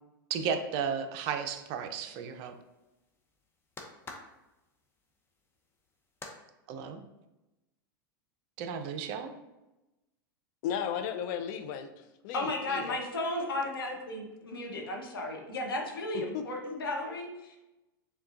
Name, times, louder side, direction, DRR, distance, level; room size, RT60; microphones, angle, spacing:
voice 1, 0.3-2.5 6.7-7.0 8.6-9.3, right 7 dB, 50° right, 7 dB, 0.5 m, -34 dB
sound 1, 1.3-6.4, left 3 dB, 20° left, 0.7 m, -51 dB
voice 2, 10.6-11.9 12.2-13.0 16.1-16.4, left 8 dB, 55° left, 9 dB, 0.5 m, -35 dB
voice 3, 12.3-17.6, left 2 dB, 85° left, 0 dB, 1.0 m, -34 dB
6.6 x 2.3 x 2.5 m, 1.0 s
hypercardioid pair, 100°, 12 cm